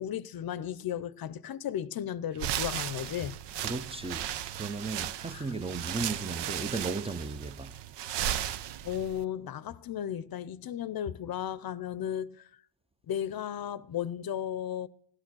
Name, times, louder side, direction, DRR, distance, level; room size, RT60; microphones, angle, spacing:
voice 1, 0.0-3.4 5.3-5.5 8.4-8.6 8.8-12.5 13.1-14.9, left 10 dB, 60° left, 0.6 m, -35 dB
sound 1, 2.3-9.2, right 11 dB, 80° right, 0.6 m, -36 dB
voice 2, 3.6-4.3 4.5-7.8, right 3 dB, 15° right, 0.6 m, -35 dB
16.0 x 9.7 x 6.2 m
cardioid pair, 90°, 42 cm